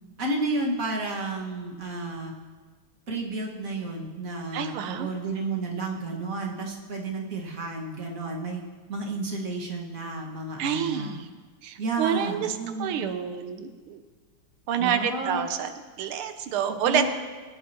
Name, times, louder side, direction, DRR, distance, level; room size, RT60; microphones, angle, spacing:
voice 1, 0.2-2.3 3.1-8.6 8.9-11.2 11.8-13.2 14.8-15.4 16.7-17.1, right 2 dB, 40° right, -1 dB, 2.1 m, -31 dB
voice 2, 4.5-5.1 10.6-11.3 11.6-14.0 14.7-15.7 16.0-17.1, right 8 dB, 90° right, 8 dB, 1.7 m, -28 dB
22.0 x 9.9 x 3.0 m, 1.4 s
omnidirectional pair, 2.3 m